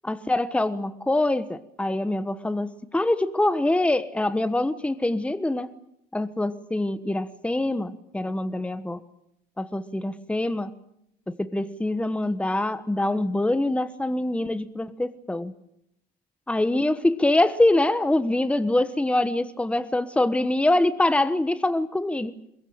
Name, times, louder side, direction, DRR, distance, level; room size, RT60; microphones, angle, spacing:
voice 1, 0.0-5.7 6.1-9.0 9.6-10.7 11.3-15.5 16.5-22.4, left 1 dB, 5° left, 13 dB, 1.2 m, -24 dB
22.5 x 21.0 x 8.9 m, 0.77 s
cardioid pair, 110°, 17 cm